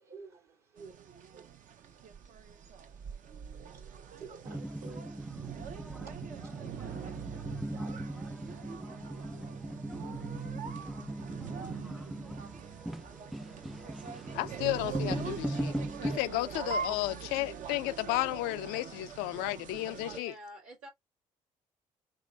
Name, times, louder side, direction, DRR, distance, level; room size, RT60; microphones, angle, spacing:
voice 1, 0.0-8.8, right 4 dB, 70° right, 2.3 m, -55 dB
sound 1, 0.8-20.2, right 7 dB, 50° right, 0.6 m, -43 dB
sound 2, 4.5-16.2, right 1 dB, ahead, 0.4 m, -39 dB
voice 2, 14.3-15.7 16.0-20.3, left 17 dB, 65° left, 0.4 m, -33 dB
voice 3, 20.0-20.9, equal, 85° right, 2.0 m, -48 dB
5.0 x 3.2 x 2.4 m
figure-of-eight pair, 45°, 17 cm